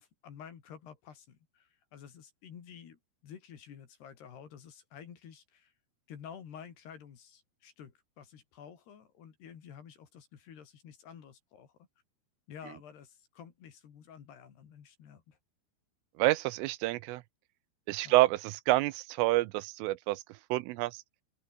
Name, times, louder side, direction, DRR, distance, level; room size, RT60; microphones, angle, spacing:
voice 1, 0.0-5.7 6.1-11.7 12.5-15.4 18.0-18.1, left 8 dB, 55° left, 4.8 m, -51 dB
voice 2, 16.2-17.2 17.9-20.2 20.5-21.0, right 19 dB, 85° right, 3.2 m, -28 dB
open air
omnidirectional pair, 5.9 m